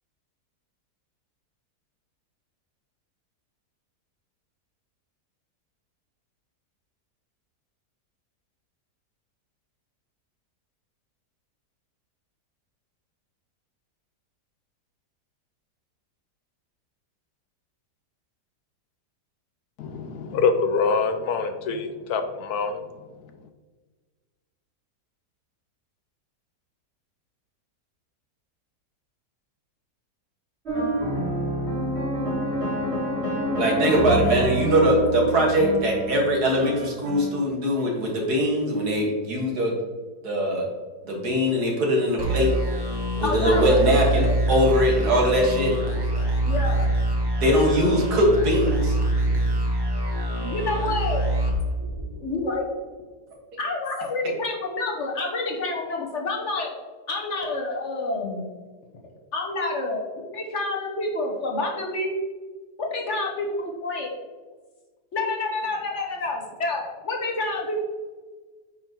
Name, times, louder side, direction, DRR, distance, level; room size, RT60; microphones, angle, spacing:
voice 1, 19.8-22.8, left 5 dB, 75° left, 1.1 m, -25 dB
sound 1, 30.6-37.4, right 1 dB, 40° right, 2.4 m, -27 dB
voice 2, 33.6-39.7 40.2-40.6 41.0-42.5 43.2-45.7 47.4-49.0, equal, 70° right, 2.2 m, -21 dB
sound 2, 42.2-52.5, right 1 dB, 15° right, 1.0 m, -25 dB
voice 3, 43.2-44.3 46.4-46.9 50.4-51.3 52.1-52.7 53.6-56.7 57.1-58.5 59.3-60.0 60.3-62.1 62.8-64.1 65.1-67.8, left 2 dB, 50° left, 1.4 m, -28 dB
9.2 x 5.6 x 2.9 m
omnidirectional pair, 1.7 m